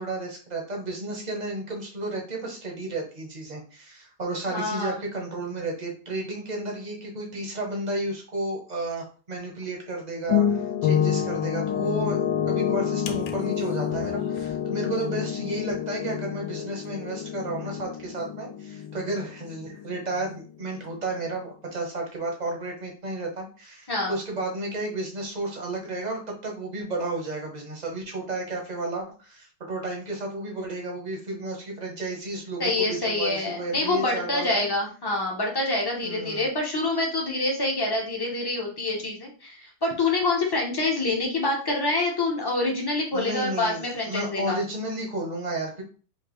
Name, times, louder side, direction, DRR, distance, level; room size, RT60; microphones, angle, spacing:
voice 1, 0.0-34.7 36.0-36.5 43.1-45.8, right 2 dB, 35° right, 0 dB, 0.8 m, -32 dB
voice 2, 4.5-5.0 23.9-24.2 32.6-44.6, left 2 dB, 20° left, -1 dB, 0.6 m, -26 dB
sound 1, 10.3-20.4 20.7-20.9, left 9 dB, 80° left, 1.2 m, -28 dB
4.4 x 2.8 x 3.1 m, 0.38 s
omnidirectional pair, 1.9 m